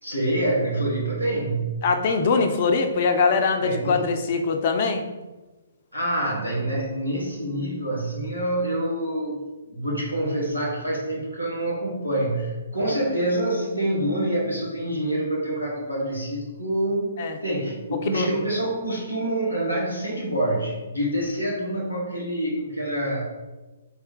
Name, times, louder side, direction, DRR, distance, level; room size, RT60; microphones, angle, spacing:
voice 1, 0.0-1.8 3.6-4.0 5.9-9.4 9.7-17.1 17.4-23.2, right 1 dB, 90° right, -4 dB, 1.5 m, -26 dB
voice 2, 1.8-5.0 17.2-17.4 18.1-18.3, left 4 dB, 40° left, 5 dB, 0.5 m, -22 dB
3.5 x 3.3 x 4.5 m, 1.2 s
figure-of-eight pair, 125°, 0 cm